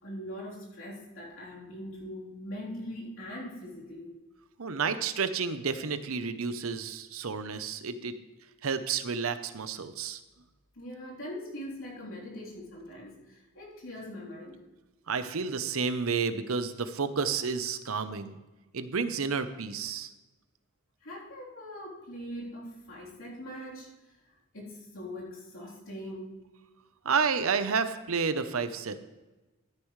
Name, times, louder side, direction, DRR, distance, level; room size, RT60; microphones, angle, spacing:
voice 1, 0.0-4.1 10.8-14.6 21.0-24.1 24.5-26.4, equal, 65° left, -4 dB, 3.5 m, -42 dB
voice 2, 4.6-8.1 8.6-10.2 15.1-18.4 18.7-20.1 27.0-29.0, right 5 dB, 75° right, 11 dB, 0.8 m, -30 dB
13.0 x 10.0 x 3.2 m, 1.1 s
head